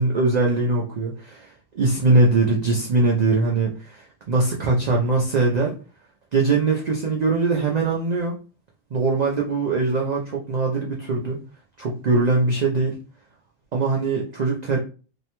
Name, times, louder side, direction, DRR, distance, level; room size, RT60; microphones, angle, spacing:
voice 1, 0.0-5.7 6.3-8.4 8.9-11.4 11.8-12.9 13.7-14.8, right 3 dB, 80° right, -1 dB, 0.3 m, -21 dB
2.6 x 2.1 x 2.8 m, 0.36 s
omnidirectional pair, 1.3 m